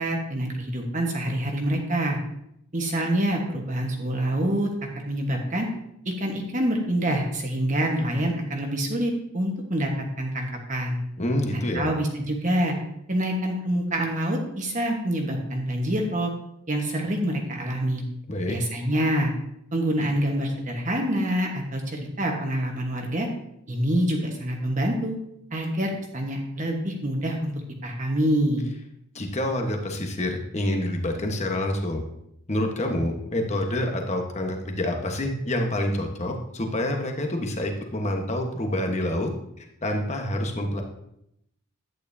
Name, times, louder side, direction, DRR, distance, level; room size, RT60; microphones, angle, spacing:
voice 1, 0.0-2.2 2.7-4.7 5.1-5.7 6.0-9.9 10.2-11.0 11.5-12.7 13.1-16.3 16.7-18.0 18.5-19.3 19.7-23.3 23.7-25.2 25.5-27.5 27.8-28.7, right 1 dB, 35° right, 1 dB, 1.2 m, -26 dB
voice 2, 11.2-11.9 18.3-18.6 29.1-32.0 32.5-39.3 39.6-40.8, left 1 dB, 30° left, 3 dB, 1.2 m, -27 dB
11.0 x 9.1 x 2.7 m, 0.77 s
head